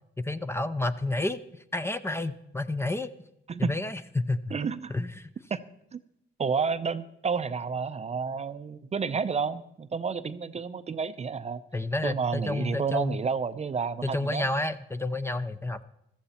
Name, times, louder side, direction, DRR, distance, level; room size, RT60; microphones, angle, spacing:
voice 1, 0.2-3.1 3.6-4.5 4.9-5.3 11.7-13.2 14.0-15.8, left 2 dB, 10° left, 12 dB, 0.6 m, -30 dB
voice 2, 4.5-4.9 5.5-5.6 5.9-6.0 6.4-11.6 12.0-14.4, right 5 dB, 35° right, 13 dB, 0.6 m, -30 dB
14.5 x 14.0 x 4.3 m, 0.79 s
cardioid pair, 90°, 20 cm